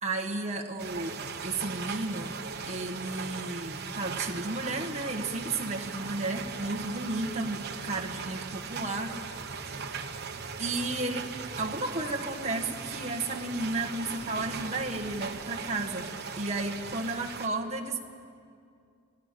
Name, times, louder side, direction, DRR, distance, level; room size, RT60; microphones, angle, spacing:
voice 1, 0.0-2.4 2.7-9.3 10.6-11.3 11.6-16.1 16.3-18.0, right 2 dB, 35° right, 2 dB, 1.4 m, -33 dB
sound 1, 0.8-17.5, right 5 dB, 50° right, 1.2 m, -39 dB
27.5 x 17.0 x 6.9 m, 2.4 s
head